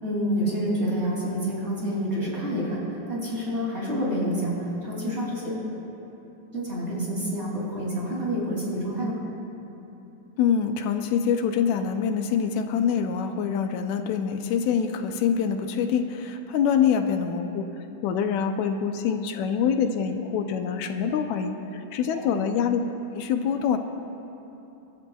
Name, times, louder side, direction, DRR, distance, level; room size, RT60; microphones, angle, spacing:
voice 1, 0.0-5.5 6.5-9.1 22.1-22.4, equal, 20° right, -5 dB, 2.7 m, -28 dB
voice 2, 10.4-22.8 23.2-23.8, left 7 dB, 75° left, 6 dB, 1.9 m, -25 dB
24.5 x 12.5 x 2.3 m, 2.9 s
omnidirectional pair, 3.6 m